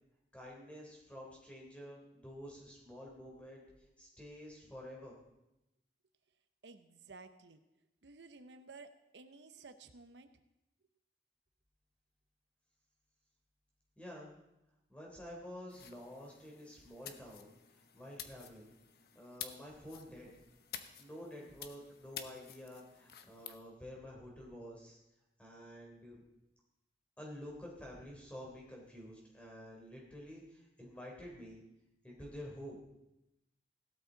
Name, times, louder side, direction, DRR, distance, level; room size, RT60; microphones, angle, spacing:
voice 1, 0.3-3.6 4.0-5.1 14.0-14.3 14.9-18.7 19.1-20.3 21.0-25.0 25.4-26.2 27.2-31.6 32.0-32.8, equal, 5° left, -2 dB, 3.4 m, -50 dB
voice 2, 6.6-7.6 8.0-10.3, right 3 dB, 90° right, 9 dB, 0.9 m, -54 dB
sound 1, 15.7-23.6, left 9 dB, 60° left, 0.9 m, -51 dB
16.5 x 12.5 x 4.0 m, 0.92 s
head